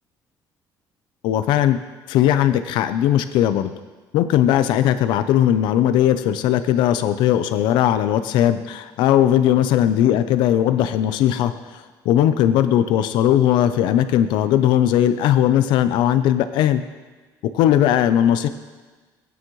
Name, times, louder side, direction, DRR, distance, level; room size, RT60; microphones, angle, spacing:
voice 1, 1.2-1.8 2.1-3.7 4.1-16.8 17.5-18.5, left 11 dB, 90° left, 11 dB, 0.7 m, -18 dB
18.0 x 9.4 x 3.2 m, 1.3 s
cardioid pair, 150°, 8 cm